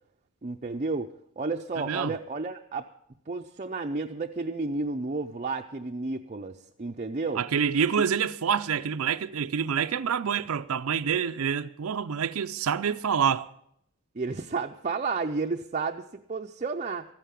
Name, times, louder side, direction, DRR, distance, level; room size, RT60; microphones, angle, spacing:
voice 1, 0.4-1.1 1.4-2.9 3.3-7.4 10.3-10.4 14.2-16.0 16.3-17.1, right 3 dB, 35° right, 0.5 m, -31 dB
voice 2, 1.8-2.1 7.4-13.5, right 7 dB, 80° right, 0.5 m, -27 dB
13.5 x 9.3 x 8.2 m
head